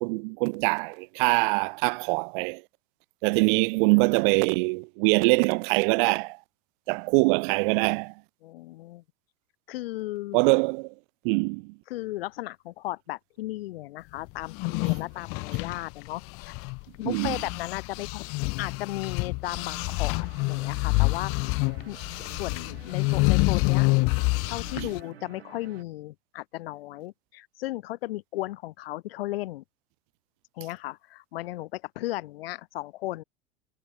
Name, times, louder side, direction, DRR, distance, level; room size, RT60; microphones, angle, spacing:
voice 1, 0.0-2.6 3.2-6.4 6.9-8.1 10.3-10.9 11.2-11.7 17.0-17.4 24.8-24.9, right 31 dB, 55° right, 1.1 m, -23 dB
voice 2, 8.4-9.0 9.7-10.4 11.9-16.5 17.0-18.3 18.6-21.3 21.9-23.9 24.5-29.6 30.6-33.2, left 17 dB, 65° left, 5.7 m, -35 dB
sound 1, 14.4-16.8 17.1-25.0, left 28 dB, 45° left, 0.7 m, -27 dB
sound 2, 19.4-25.8, right 10 dB, 75° right, 5.0 m, -50 dB
hypercardioid pair, 85°, 31 cm